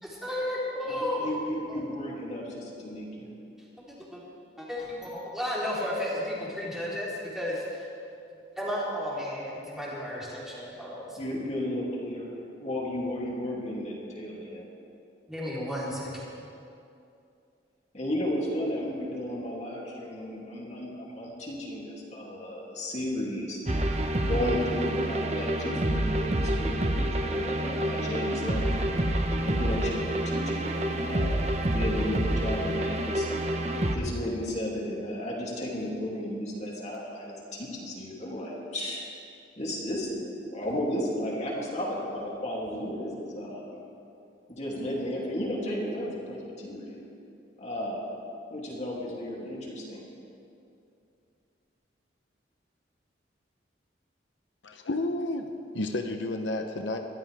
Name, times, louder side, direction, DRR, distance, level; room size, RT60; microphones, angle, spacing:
voice 1, 0.0-1.3 1.7-1.8 4.1-4.2 4.6-7.9 8.6-11.2 15.3-16.2, left 1 dB, ahead, -8 dB, 3.8 m, -33 dB
voice 2, 0.8-3.3 11.2-14.7 17.9-23.6 24.2-26.9 27.2-28.8 29.3-33.3 33.9-39.0 39.6-43.8 44.5-47.0 47.6-48.1 48.5-50.0, left 1 dB, 40° left, -4 dB, 2.9 m, -34 dB
sound 1, 23.7-34.0, right 1 dB, 35° right, 1.0 m, -28 dB
voice 3, 54.6-55.5 55.7-57.0, left 2 dB, 85° left, 5 dB, 0.9 m, -31 dB
22.5 x 14.0 x 3.6 m, 2.6 s
head